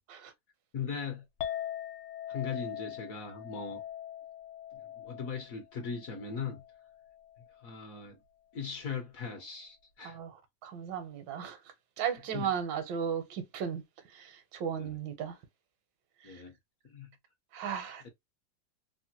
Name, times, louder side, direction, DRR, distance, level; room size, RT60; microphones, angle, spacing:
voice 1, 0.7-1.2 2.3-3.8 4.7-6.6 7.6-8.2 8.5-10.2 12.3-12.5 14.8-14.9 16.2-16.5 16.8-17.1, left 6 dB, 65° left, 0.9 m, -39 dB
Chink clink, 1.4-7.7, left 11 dB, 80° left, 1.3 m, -42 dB
voice 2, 10.0-11.6 12.0-15.4 16.2-16.4 17.5-18.1, right 8 dB, 80° right, 1.4 m, -36 dB
3.3 x 2.1 x 2.7 m
omnidirectional pair, 2.0 m